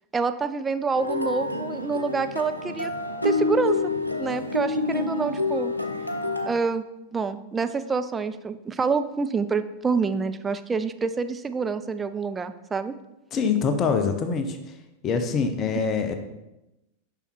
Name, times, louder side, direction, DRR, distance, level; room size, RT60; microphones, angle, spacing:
voice 1, 0.1-2.9 3.2-3.8 4.2-5.7 6.5-6.8 7.1-12.9, right 5 dB, 15° right, 10 dB, 0.4 m, -27 dB
sound 1, 0.9-6.5, left 2 dB, 85° left, 0.7 m, -28 dB
voice 2, 13.3-14.6 15.0-16.1, left 5 dB, 30° left, 7 dB, 0.7 m, -24 dB
7.0 x 5.6 x 4.5 m, 0.95 s
figure-of-eight pair, 90°, 0 cm